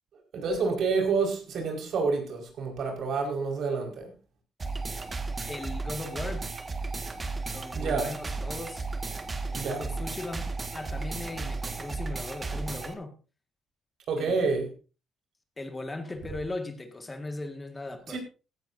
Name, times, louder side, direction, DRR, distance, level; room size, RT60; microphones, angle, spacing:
voice 1, 0.3-4.1 7.7-8.1 9.5-9.8 14.1-14.7 18.1-18.2, right 4 dB, 70° right, 5.1 m, -28 dB
sound 1, 4.6-12.9, right 3 dB, 30° right, 1.8 m, -34 dB
voice 2, 5.5-6.5 7.5-8.9 9.5-13.1 14.2-14.5 15.6-18.2, left 2 dB, 20° left, 1.9 m, -38 dB
16.5 x 13.5 x 2.7 m
cardioid pair, 90°, 0 cm